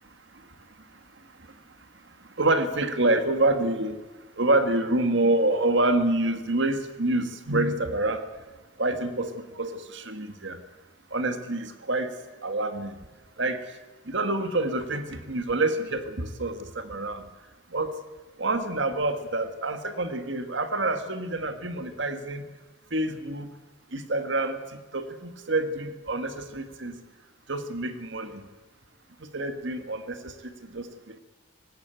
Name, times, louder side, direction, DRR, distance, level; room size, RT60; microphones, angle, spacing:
voice 1, 0.9-1.6 2.1-4.0 4.4-8.2 8.8-10.6 11.1-12.2 12.4-13.0 13.4-13.8 14.0-17.3 17.7-18.0 18.4-22.5 22.9-23.5 23.9-27.0 27.5-28.5 29.2-31.2, right 2 dB, 65° right, 9 dB, 1.7 m, -27 dB
18.5 x 18.5 x 9.0 m, 1.2 s
head